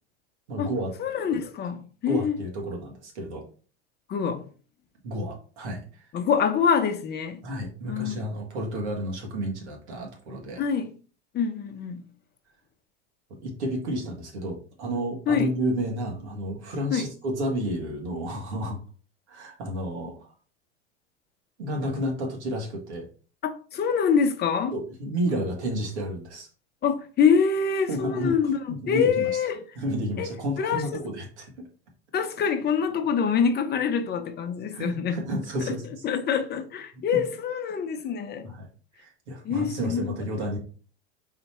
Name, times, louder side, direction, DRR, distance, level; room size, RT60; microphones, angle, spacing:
voice 1, 0.5-0.9 2.1-3.4 5.0-6.0 7.4-10.6 13.4-18.8 19.3-20.2 21.6-23.0 24.7-26.5 27.9-28.4 28.7-29.3 29.7-31.6 34.7-35.8 36.9-37.2 38.4-38.7 39.0-40.6, equal, 75° right, 1.7 m, -31 dB
voice 2, 1.0-2.4 4.1-4.4 6.1-7.4 7.9-8.1 10.6-10.9 11.3-12.0 15.3-15.5 16.9-17.0 23.4-24.7 26.8-28.6 28.9-29.6 30.2-30.3 30.6-31.0 32.1-35.2 35.7-35.8 36.0-38.5 39.4-40.1, left 6 dB, 30° left, 0.8 m, -25 dB
4.1 x 3.0 x 4.3 m
hypercardioid pair, 90°, 34 cm